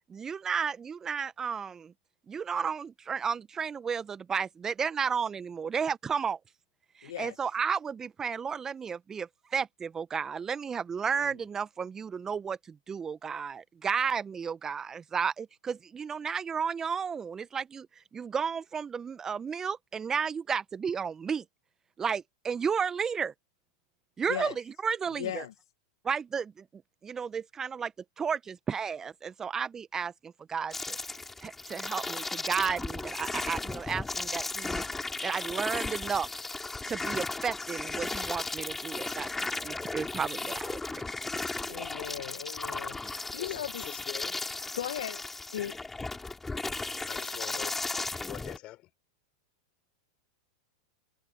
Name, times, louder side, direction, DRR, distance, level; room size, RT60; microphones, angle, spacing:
voice 1, 0.1-1.9 2.3-6.4 7.0-17.9 18.1-21.4 22.0-23.3 24.2-24.5 24.8-25.4 26.0-27.9 28.2-31.0 31.4-34.8 35.2-36.3 36.9-41.1 41.5-41.8, right 6 dB, 20° right, 1.1 m, -33 dB
voice 2, 7.0-7.4 11.1-11.2 24.3-24.5 25.2-25.5 41.7-43.9 44.7-45.2 45.5-45.8, left 11 dB, 70° left, 1.5 m, -37 dB
sound 1, 30.7-48.6, left 3 dB, 10° left, 4.7 m, -35 dB
voice 3, 43.4-44.4 47.0-47.8 48.3-48.9, left 17 dB, 45° left, 5.2 m, -44 dB
hypercardioid pair, 95°, 2 cm